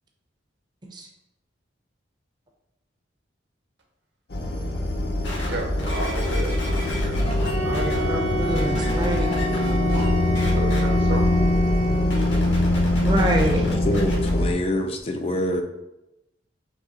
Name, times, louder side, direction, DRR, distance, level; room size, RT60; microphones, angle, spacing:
sound 1, 4.3-14.5, left 1 dB, 60° left, 0.7 m, -23 dB
sound 2, 5.2-8.0 8.5-10.1 10.3-10.8 12.0-14.3 15.0-15.1, left 1 dB, 80° left, 1.1 m, -34 dB
voice 1, 5.5-7.4 7.7-8.2 10.5-11.3 13.7-13.8, right 1 dB, 65° right, 2 dB, 0.9 m, -33 dB
Wind instrument woodwind instrument, 7.4-12.3, right 1 dB, 80° right, 0.6 m, -30 dB
voice 2, 7.6-9.3 13.0-13.6, right 1 dB, 25° right, 0 dB, 0.5 m, -26 dB
voice 3, 13.6-15.6, left 1 dB, 30° left, 5 dB, 0.3 m, -26 dB
4.0 x 3.2 x 3.7 m, 0.94 s
head